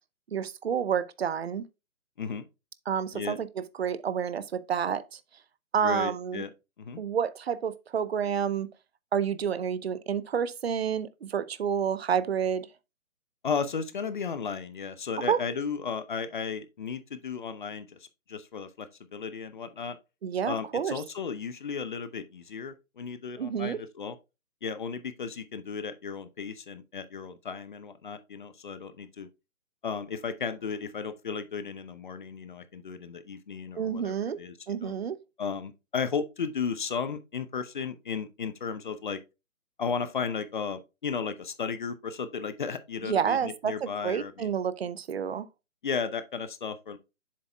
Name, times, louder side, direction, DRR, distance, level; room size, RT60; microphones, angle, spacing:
voice 1, 0.3-1.7 2.9-5.2 5.7-6.4 7.0-8.7 9.1-12.7 15.3-15.4 20.2-20.9 23.4-23.8 33.8-34.4 34.7-35.2 43.1-45.5, right 7 dB, 50° right, 0.7 m, -29 dB
voice 2, 5.8-6.5 6.8-7.0 13.4-18.0 18.3-20.0 20.5-24.2 24.6-29.3 29.8-34.9 35.4-39.2 39.8-44.5 45.8-47.0, left 6 dB, 35° left, 0.7 m, -34 dB
7.6 x 6.9 x 2.3 m
figure-of-eight pair, 150°, 42 cm